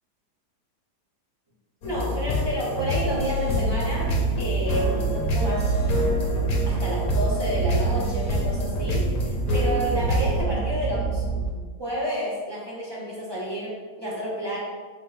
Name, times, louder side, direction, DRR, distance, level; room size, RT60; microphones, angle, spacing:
sound 1, 1.8-10.4, left 1 dB, 65° left, 1.3 m, -26 dB
voice 1, 1.8-5.7 6.6-11.2 11.8-14.6, equal, 20° right, -7 dB, 0.9 m, -30 dB
sound 2, 3.5-11.5, right 6 dB, 75° right, 1.1 m, -28 dB
4.6 x 3.9 x 2.6 m, 1.5 s
omnidirectional pair, 1.8 m